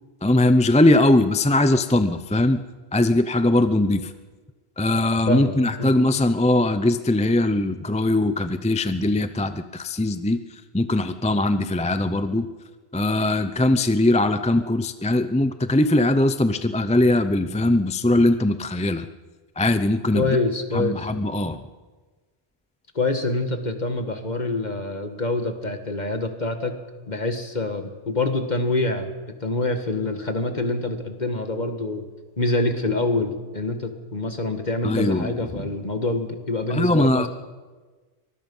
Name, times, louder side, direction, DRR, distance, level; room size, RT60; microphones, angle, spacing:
voice 1, 0.2-2.6 2.9-4.1 4.8-12.5 12.9-19.1 19.6-20.4 20.7-21.6 34.8-35.6 36.7-37.3, left 1 dB, 10° left, 10 dB, 0.5 m, -21 dB
voice 2, 5.3-5.9 20.1-21.1 23.0-26.7 27.1-29.1 29.4-32.0 32.4-37.3, left 2 dB, 45° left, 6 dB, 1.9 m, -26 dB
23.5 x 20.5 x 5.5 m, 1.3 s
omnidirectional pair, 1.1 m